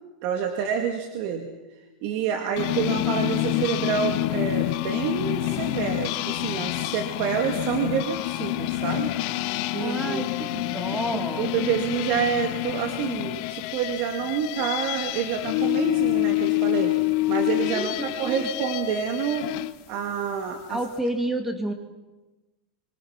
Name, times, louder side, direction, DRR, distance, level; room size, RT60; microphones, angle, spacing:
voice 1, 0.2-1.5 2.0-9.1 9.7-10.3 11.1-19.5 19.9-20.8, right 8 dB, 50° right, 5 dB, 2.3 m, -28 dB
sound 1, 2.6-19.7, left 18 dB, 50° left, 1.1 m, -27 dB
voice 2, 9.8-11.6 17.7-18.5 20.7-21.7, right 1 dB, 5° right, 6 dB, 2.5 m, -30 dB
26.5 x 25.0 x 6.0 m, 1.1 s
supercardioid pair, 150°, 4 cm